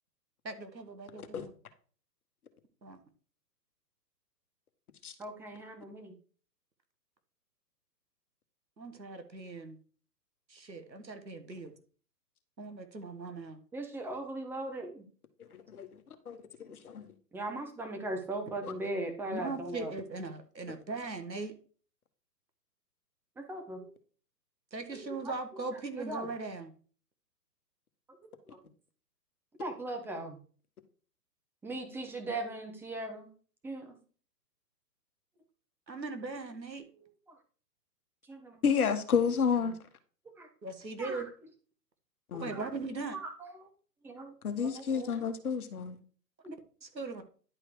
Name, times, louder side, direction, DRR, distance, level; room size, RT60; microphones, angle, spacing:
voice 1, 0.4-1.5 2.8-3.0 8.8-9.8 10.5-11.8 12.6-13.6 19.3-21.5 24.7-26.7 35.9-36.8 40.6-41.3 42.4-43.2 46.8-47.2, right 3 dB, 85° right, 1.6 m, -39 dB
voice 2, 5.2-6.1 13.7-15.0 17.3-19.9 23.4-23.9 24.9-25.3 26.0-26.3 28.5-28.6 29.6-30.4 31.6-33.3 33.6-33.9 37.3-37.4 38.3-38.6 40.4-40.5 41.0-41.2 42.3-42.6 43.1-43.7 44.0-44.3 44.6-45.1 46.4-46.5, right 2 dB, 5° right, 0.9 m, -39 dB
voice 3, 15.5-15.9 16.2-17.1 18.6-18.7 38.6-39.7 42.3-42.5 44.4-46.0, left 6 dB, 60° left, 1.5 m, -30 dB
10.5 x 4.8 x 4.7 m
figure-of-eight pair, 125°, 50 cm